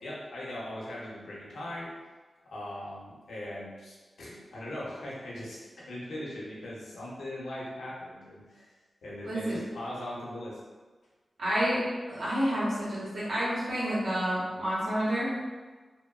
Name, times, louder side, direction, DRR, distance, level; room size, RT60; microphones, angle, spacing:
voice 1, 0.0-1.9 2.4-8.7 9.0-10.6, left 1 dB, 85° left, -6 dB, 0.7 m, -40 dB
voice 2, 9.2-9.6 11.4-11.8 12.1-15.3, equal, 85° right, -8 dB, 1.0 m, -29 dB
2.9 x 2.1 x 2.3 m, 1.3 s
cardioid pair, 45°, 0 cm